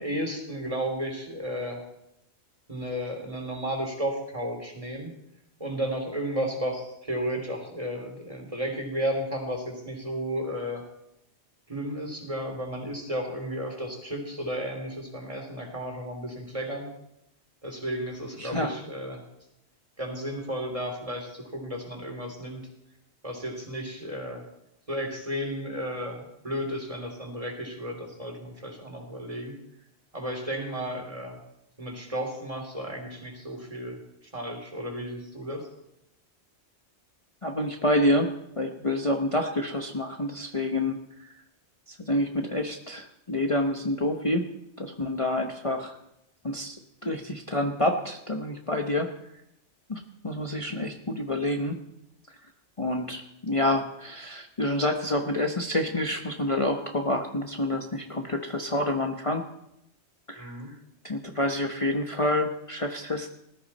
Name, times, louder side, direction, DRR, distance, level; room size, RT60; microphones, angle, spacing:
voice 1, 0.0-1.8 2.7-5.2 5.6-10.8 11.7-16.9 17.6-19.2 20.0-22.6 23.2-24.4 24.9-29.5 30.1-31.4 31.8-35.7 60.3-60.7, equal, 30° right, 2 dB, 3.3 m, -33 dB
voice 2, 18.4-18.7 37.4-38.3 38.6-41.3 41.9-44.5 44.8-46.0 46.4-46.8 47.0-49.1 49.9-51.8 52.8-59.4 60.3-60.6 61.0-63.3, left 1 dB, 30° left, 3 dB, 1.1 m, -28 dB
20.0 x 13.5 x 4.3 m, 0.84 s
omnidirectional pair, 1.2 m